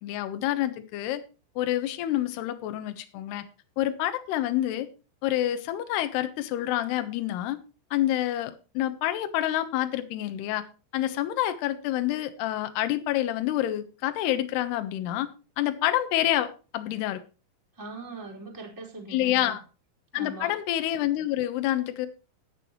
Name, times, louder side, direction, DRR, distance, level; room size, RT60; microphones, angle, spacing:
voice 1, 0.0-1.2 1.6-3.4 3.8-4.9 5.2-7.6 7.9-10.6 10.9-15.3 15.6-16.5 16.7-17.2 19.1-19.6 20.1-22.1, left 13 dB, 70° left, 9 dB, 2.7 m, -27 dB
voice 2, 17.7-19.6 20.1-20.5, right 3 dB, 5° right, -2 dB, 3.6 m, -41 dB
19.0 x 6.9 x 3.1 m, 0.33 s
omnidirectional pair, 6.0 m